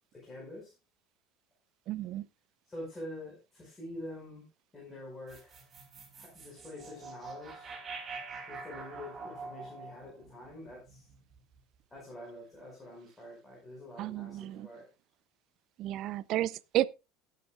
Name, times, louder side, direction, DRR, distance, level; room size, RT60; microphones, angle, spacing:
voice 1, 0.1-0.7 2.7-4.5 4.7-5.6 6.1-7.8 8.5-11.1 11.9-14.9, left 1 dB, 15° left, 5.5 m, -46 dB
voice 2, 1.9-2.2 14.0-14.7 15.8-16.9, right 14 dB, 50° right, 0.6 m, -32 dB
sound 1, 5.3-11.6, right 4 dB, 20° right, 4.3 m, -46 dB
19.5 x 8.3 x 2.4 m
supercardioid pair, 135°, 0 cm